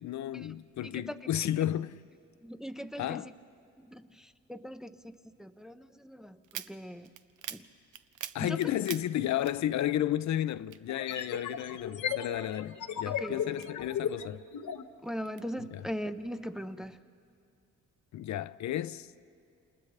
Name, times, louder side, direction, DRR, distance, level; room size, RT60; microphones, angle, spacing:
voice 1, 0.0-2.0 3.0-3.3 8.3-14.4 15.6-15.9 18.1-19.1, left 12 dB, 70° left, 0.5 m, -32 dB
voice 2, 2.4-3.2 3.8-4.0 4.5-7.1 7.5-7.6 8.4-8.5 13.1-13.4 15.0-17.0, equal, ahead, 0.5 m, -40 dB
sound 1, 6.4-10.1 10.4-11.7 12.1-14.2 14.7-15.4, right 11 dB, 85° right, 0.6 m, -45 dB
sound 2, 9.5-9.6 10.9-14.9, left 8 dB, 85° left, 1.1 m, -35 dB
29.0 x 28.0 x 3.3 m
cardioid pair, 130°, 30 cm